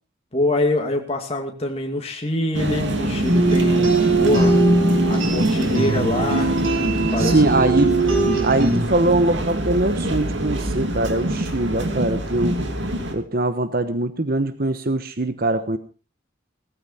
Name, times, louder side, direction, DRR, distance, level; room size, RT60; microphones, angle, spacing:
voice 1, 0.3-4.6 5.1-6.5 6.9-7.5, left 1 dB, 30° left, 3 dB, 2.4 m, -25 dB
sound 1, 2.5-13.1, right 1 dB, 65° right, 2.7 m, -26 dB
sound 2, 3.2-8.9, right 2 dB, 90° right, 5.7 m, -20 dB
voice 2, 7.2-7.9 8.4-12.6 13.1-15.8, right 2 dB, 50° right, 11 dB, 1.0 m, -22 dB
16.5 x 14.5 x 4.3 m, 0.34 s
head